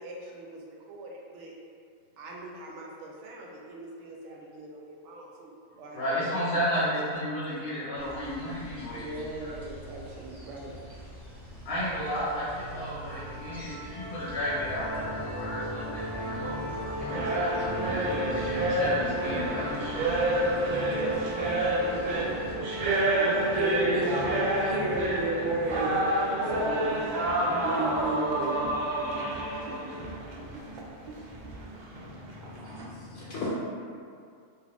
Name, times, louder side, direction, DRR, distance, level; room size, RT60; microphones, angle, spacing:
voice 1, 0.0-1.5 2.2-6.3 6.6-7.1 8.9-10.7 22.9-26.1 26.4-27.0 27.4-28.7, right 2 dB, 70° right, -2 dB, 0.8 m, -35 dB
voice 2, 5.9-9.1 9.4-9.5 11.6-19.9, equal, 50° left, -10 dB, 1.1 m, -33 dB
sound 1, 7.9-22.6, equal, ahead, 0.5 m, -46 dB
sound 2, 13.1-31.8, equal, 20° right, 0.9 m, -38 dB
sound 3, 17.1-32.8, right 1 dB, 85° right, 0.4 m, -29 dB
voice 3, 31.9-33.5, left 3 dB, 70° left, -8 dB, 0.9 m, -40 dB
2.6 x 2.4 x 3.3 m, 2.3 s
omnidirectional pair, 1.4 m